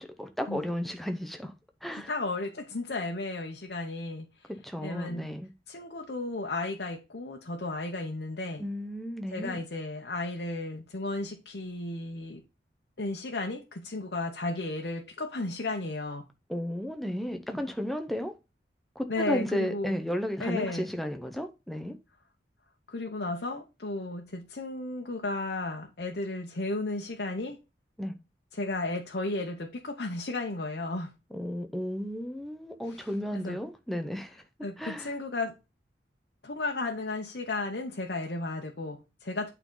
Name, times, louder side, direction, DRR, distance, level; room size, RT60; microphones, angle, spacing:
voice 1, 0.0-1.5 1.8-2.1 4.6-5.5 8.6-9.6 16.5-18.4 19.0-22.0 28.0-28.1 31.3-34.4 34.8-35.1, equal, ahead, 0.8 m, -33 dB
voice 2, 2.0-4.5 4.8-5.3 5.7-8.6 9.3-12.4 13.0-16.3 19.1-20.0 20.4-20.9 22.9-27.6 28.5-31.1 32.9-33.0 33.3-33.6 34.6-35.5 36.4-39.5, left 2 dB, 70° left, 0.9 m, -34 dB
8.8 x 4.0 x 3.8 m
head